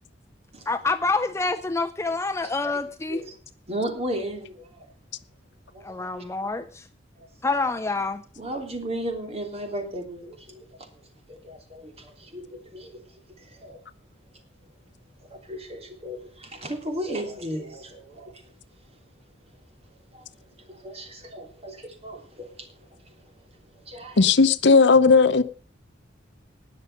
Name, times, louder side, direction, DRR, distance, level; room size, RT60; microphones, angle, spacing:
voice 1, 0.7-3.2 5.8-6.9 7.4-8.2, left 3 dB, 15° left, 0.5 m, -27 dB
voice 2, 3.7-4.9 5.7-6.2 7.2-7.3 8.4-11.0 11.3-13.8 15.2-18.5 20.1-20.3 20.6-23.3 23.8-24.3, right 1 dB, 35° right, 3.2 m, -36 dB
voice 3, 24.2-25.4, left 4 dB, 65° left, 0.8 m, -16 dB
19.5 x 6.6 x 6.5 m
head